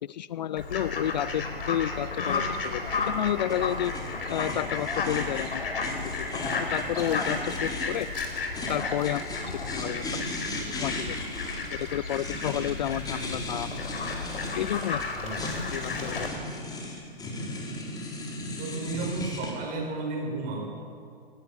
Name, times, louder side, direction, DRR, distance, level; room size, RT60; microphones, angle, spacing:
voice 1, 0.0-3.9 4.3-5.7 6.0-6.1 6.6-8.1 8.7-9.3 9.6-10.2 10.8-11.2 11.7-13.7 14.6-15.0 15.7-16.3, left 11 dB, 45° left, 18 dB, 0.6 m, -31 dB
Fowl, 0.6-16.3, left 4 dB, 65° left, 5.0 m, -33 dB
sound 1, 2.3-19.5, left 2 dB, 10° left, 4.6 m, -37 dB
voice 2, 18.6-20.6, right 3 dB, 30° right, 2 dB, 6.9 m, -33 dB
22.5 x 18.5 x 9.4 m, 2.3 s
figure-of-eight pair, 115°, 30 cm